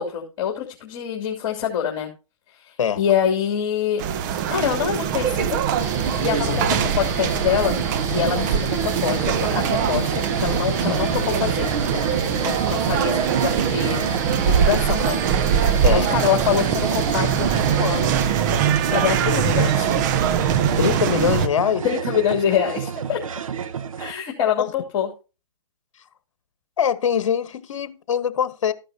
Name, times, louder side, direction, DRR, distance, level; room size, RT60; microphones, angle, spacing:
voice 1, 0.0-2.1 2.6-4.0 4.5-5.6 6.0-7.8 8.1-11.7 11.9-15.2 15.9-18.1 18.9-19.9 21.8-23.2 24.0-25.1, left 8 dB, 40° left, 3.0 m, -25 dB
sound 1, 4.0-21.5, right 8 dB, 35° right, 0.9 m, -22 dB
sound 2, 5.8-18.3, right 3 dB, 15° right, 1.3 m, -32 dB
sound 3, 7.2-24.1, right 7 dB, 75° right, 1.1 m, -30 dB
voice 2, 20.8-21.8 26.8-28.7, left 8 dB, 60° left, 1.5 m, -23 dB
14.0 x 11.0 x 2.9 m
hypercardioid pair, 140°, 17 cm